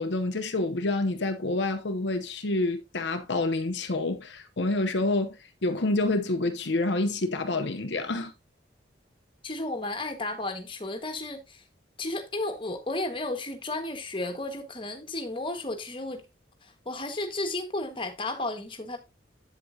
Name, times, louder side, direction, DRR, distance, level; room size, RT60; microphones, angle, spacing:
voice 1, 0.0-8.3, left 2 dB, 70° left, 0.8 m, -28 dB
voice 2, 9.4-11.6 12.0-16.2 16.6-19.0, left 2 dB, 25° left, 1.5 m, -33 dB
8.5 x 7.8 x 2.7 m
head